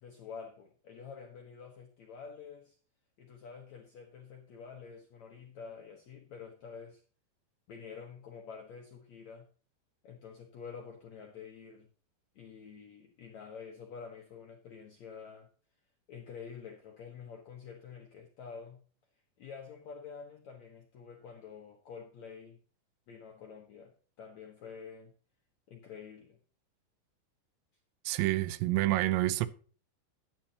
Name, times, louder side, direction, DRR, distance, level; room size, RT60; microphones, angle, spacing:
voice 1, 0.0-2.8 3.2-7.0 7.7-9.5 10.0-11.9 12.3-15.5 16.1-18.8 19.4-22.6 23.1-25.1 25.7-26.4, left 6 dB, 70° left, 1.6 m, -48 dB
voice 2, 28.1-29.5, right 16 dB, 90° right, 3.1 m, -28 dB
12.0 x 10.5 x 2.9 m
omnidirectional pair, 5.1 m